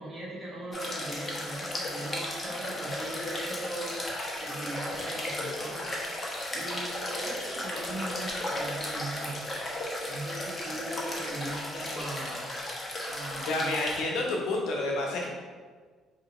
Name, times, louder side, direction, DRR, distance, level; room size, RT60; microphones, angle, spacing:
voice 1, 0.0-4.1 4.4-6.0 6.5-9.4 10.1-12.5 13.0-13.7, right 1 dB, 25° right, -7 dB, 1.3 m, -39 dB
sound 1, 0.7-14.0, left 1 dB, 25° left, 0.9 m, -35 dB
voice 2, 13.5-15.3, left 2 dB, 80° left, -1 dB, 0.8 m, -29 dB
4.6 x 2.8 x 3.0 m, 1.5 s
cardioid pair, 90°, 0 cm